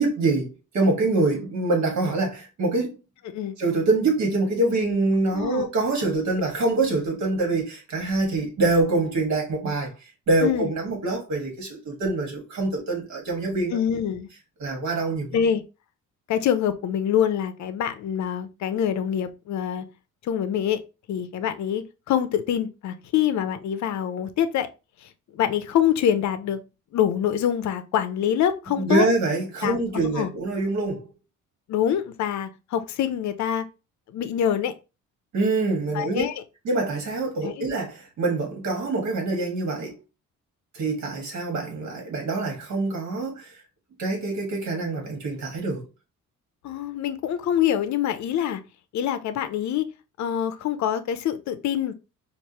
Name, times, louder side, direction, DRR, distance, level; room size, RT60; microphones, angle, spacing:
voice 1, 0.0-3.0 3.6-9.9 10.3-13.8 14.6-15.4 28.8-31.1 35.3-36.2 36.7-39.9 40.7-43.5 44.0-45.8, right 2 dB, 55° right, 1.8 m, -25 dB
voice 2, 5.3-5.7 10.4-10.7 13.7-14.3 15.3-15.6 16.3-19.8 20.2-20.8 21.1-24.7 25.0-26.6 26.9-29.1 29.6-30.3 31.7-33.7 34.1-34.7 35.9-36.4 37.4-37.7 46.6-48.6 48.9-49.9 50.2-51.9, left 9 dB, 60° left, 0.6 m, -25 dB
4.7 x 2.6 x 2.9 m
cardioid pair, 115°, 33 cm